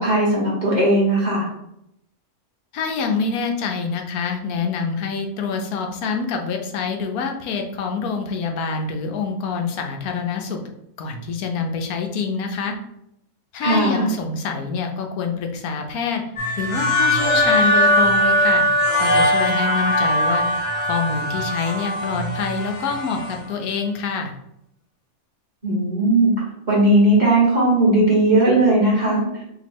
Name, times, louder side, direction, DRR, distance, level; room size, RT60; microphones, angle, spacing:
voice 1, 0.0-1.5 13.6-14.1 25.6-26.3 26.7-29.4, right 1 dB, 30° right, -5 dB, 1.3 m, -17 dB
voice 2, 2.7-10.6 11.0-12.7 13.5-16.2 16.6-18.7 19.0-20.4 20.8-24.3, left 5 dB, 85° left, 4 dB, 1.1 m, -26 dB
sound 1, 16.4-23.4, equal, 30° left, 0.8 m, -20 dB
3.0 x 3.0 x 4.2 m, 0.79 s
omnidirectional pair, 1.5 m